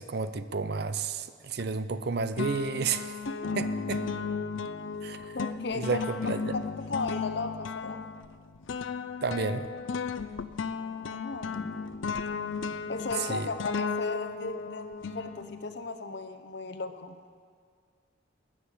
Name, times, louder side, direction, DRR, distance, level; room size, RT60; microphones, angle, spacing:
voice 1, 0.0-3.2 3.6-4.1 5.0-5.4 5.7-6.5 9.2-9.7 13.2-13.5, right 4 dB, 55° right, 12 dB, 0.6 m, -31 dB
sound 1, 1.6-2.1 2.4-15.8, left 5 dB, 85° left, 0.5 m, -35 dB
voice 2, 5.3-6.1 6.5-8.0 10.7-11.7 12.9-17.2, left 3 dB, 60° left, 9 dB, 0.8 m, -36 dB
13.0 x 7.5 x 8.4 m, 2.1 s
head